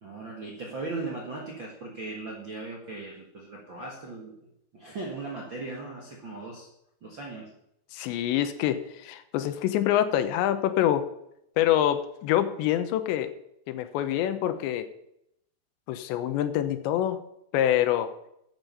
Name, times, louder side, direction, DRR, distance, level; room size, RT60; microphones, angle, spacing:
voice 1, 0.0-4.4 4.7-6.7 7.0-7.5, right 3 dB, 50° right, -3 dB, 1.4 m, -38 dB
voice 2, 7.9-11.0 11.6-13.3 13.7-14.9 15.9-17.2 17.5-18.1, left 11 dB, 85° left, 10 dB, 3.2 m, -26 dB
12.5 x 8.1 x 5.6 m, 0.77 s
omnidirectional pair, 5.0 m